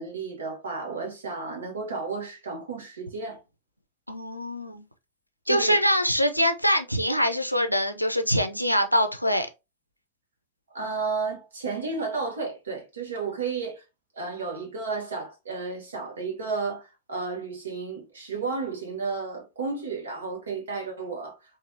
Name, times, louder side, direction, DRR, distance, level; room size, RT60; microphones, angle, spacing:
voice 1, 0.0-3.4 5.4-5.8 10.7-13.8 14.2-21.4, right 4 dB, 70° right, 1.2 m, -32 dB
voice 2, 4.1-4.8 5.5-9.5, equal, 90° left, 0.5 m, -24 dB
4.1 x 2.6 x 2.6 m
figure-of-eight pair, 90°, 0 cm